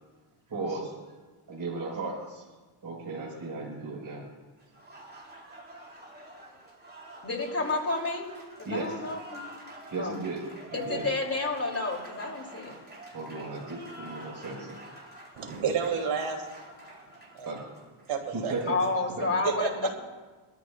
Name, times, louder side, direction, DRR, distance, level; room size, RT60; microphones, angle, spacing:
voice 1, 0.5-0.9 1.5-2.4 2.8-4.3 8.7-8.9 9.9-10.4 10.7-11.1 13.1-14.8 17.5-17.6 18.3-18.8 19.2-19.4, right 3 dB, 40° right, -3 dB, 5.1 m, -35 dB
Applause, 4.6-18.2, right 1 dB, 20° right, 4.1 m, -46 dB
voice 2, 7.2-8.3 8.6-9.4 9.9-10.2 10.7-12.7 18.7-19.9, left 3 dB, 30° left, 0 dB, 3.3 m, -30 dB
voice 3, 15.4-16.5 17.3-17.5 18.0-18.5 19.4-19.7, right 6 dB, 80° right, 1 dB, 3.1 m, -30 dB
23.5 x 13.5 x 2.5 m, 1.3 s
cardioid pair, 90°, 50 cm